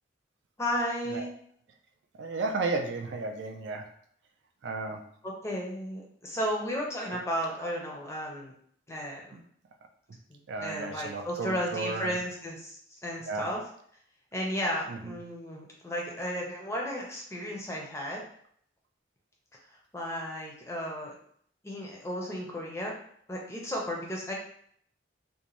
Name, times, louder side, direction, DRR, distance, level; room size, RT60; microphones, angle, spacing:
voice 1, 0.6-1.3 5.2-8.5 8.9-9.4 10.3-13.6 14.3-18.2 19.9-21.2 21.6-22.9 23.3-24.3, equal, 15° left, -2 dB, 0.5 m, -34 dB
voice 2, 2.1-3.9 4.6-5.1 9.3-9.4 10.5-12.2 13.3-13.5 14.9-15.2, right 3 dB, 70° right, 5 dB, 0.3 m, -33 dB
2.6 x 2.1 x 3.0 m, 0.63 s
head